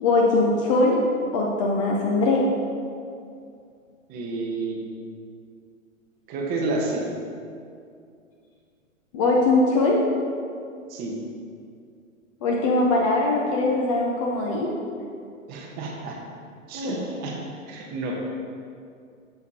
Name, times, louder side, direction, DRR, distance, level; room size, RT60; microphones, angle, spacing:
voice 1, 0.0-1.0 1.3-2.5 9.1-10.0 12.4-14.7, left 2 dB, 25° left, -2 dB, 0.5 m, -21 dB
voice 2, 4.1-4.8 6.3-7.1 10.9-11.2 15.5-16.2 16.7-17.4 17.7-18.3, right 2 dB, 25° right, 0 dB, 0.9 m, -29 dB
8.1 x 7.0 x 2.8 m, 2.4 s
hypercardioid pair, 125°, 40 cm